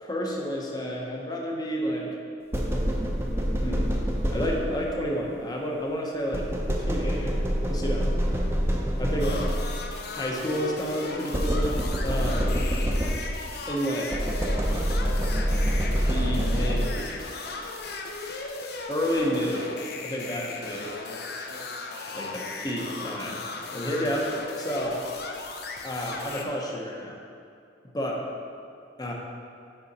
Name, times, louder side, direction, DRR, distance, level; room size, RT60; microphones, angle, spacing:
voice 1, 0.0-2.1 3.5-3.9 4.3-6.5 6.8-7.4 7.7-8.1 9.0-9.4 10.1-12.6 13.7-14.2 16.1-17.3 18.9-20.9 22.1-23.4 23.7-24.3 24.6-25.0 25.8-27.2 27.9-28.2 29.0-29.1, equal, 20° left, -1 dB, 0.8 m, -30 dB
sound 1, 2.5-5.0 6.3-9.9 11.3-13.5 14.1-17.2, equal, 15° right, 0.6 m, -26 dB
sound 2, 9.2-26.4, left 3 dB, 60° left, 0.6 m, -36 dB
6.8 x 4.9 x 4.2 m, 2.4 s
head